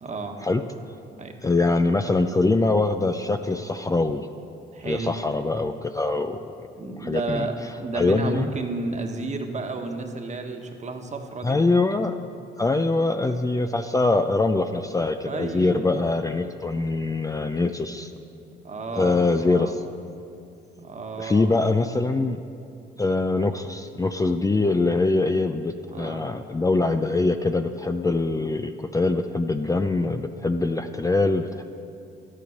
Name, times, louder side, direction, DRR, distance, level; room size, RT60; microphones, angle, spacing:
voice 1, 0.0-0.4 1.1-1.4 4.7-5.1 6.8-11.6 15.2-16.0 18.6-19.2 19.5-19.8 20.8-21.5 25.9-26.3, right 3 dB, 35° right, 4 dB, 1.4 m, -32 dB
voice 2, 1.4-4.3 4.8-6.7 7.0-7.5 7.9-8.5 11.4-12.2 12.6-18.2 18.9-19.8 21.2-22.4 23.0-31.6, left 3 dB, 15° left, 7 dB, 0.5 m, -23 dB
12.0 x 9.8 x 6.5 m, 2.6 s
cardioid pair, 90°, 20 cm